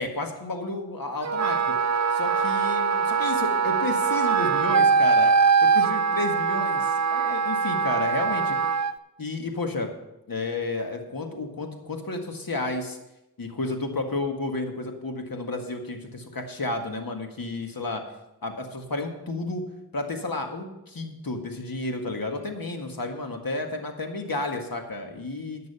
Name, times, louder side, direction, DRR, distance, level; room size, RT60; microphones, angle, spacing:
voice 1, 0.0-1.8 2.1-5.3 5.6-8.6 9.2-9.9 10.3-13.0 13.4-18.0 18.4-19.6 19.9-25.6, left 2 dB, 60° left, 4 dB, 1.8 m, -31 dB
Wind instrument woodwind instrument, 1.2-8.9, right 5 dB, 45° right, 0.6 m, -22 dB
11.0 x 6.8 x 6.7 m, 0.93 s
cardioid pair, 40°, 39 cm